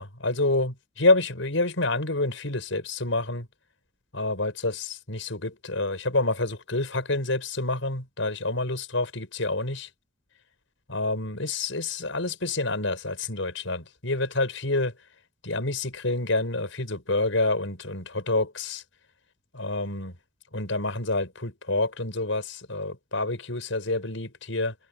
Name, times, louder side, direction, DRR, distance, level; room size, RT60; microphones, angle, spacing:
voice 1, 0.0-3.5 4.1-9.9 10.9-14.9 15.4-18.8 19.5-20.2 20.5-24.7, left 2 dB, 80° left, 5.6 m, -28 dB
head